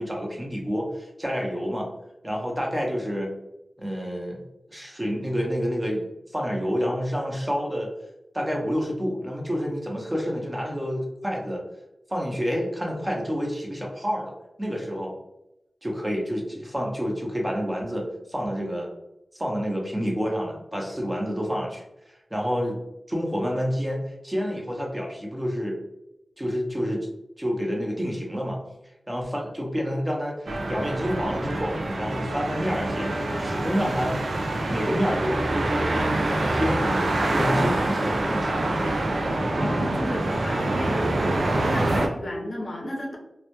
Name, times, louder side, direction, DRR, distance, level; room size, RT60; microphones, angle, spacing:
voice 1, 0.0-1.9 2.2-3.3 3.8-4.4 4.7-7.9 8.3-11.6 12.1-14.3 14.6-15.1 15.8-18.9 19.3-21.8 22.3-22.8 23.1-25.8 26.4-27.1 27.4-28.6 29.1-34.3 34.6-38.7, equal, 20° right, -1 dB, 0.6 m, -28 dB
sound 1, 30.5-42.1, right 2 dB, 75° right, 0.3 m, -26 dB
voice 2, 39.5-41.3 41.6-43.2, left 1 dB, 50° left, -1 dB, 0.5 m, -34 dB
2.1 x 2.1 x 2.8 m, 0.89 s
cardioid pair, 55°, 0 cm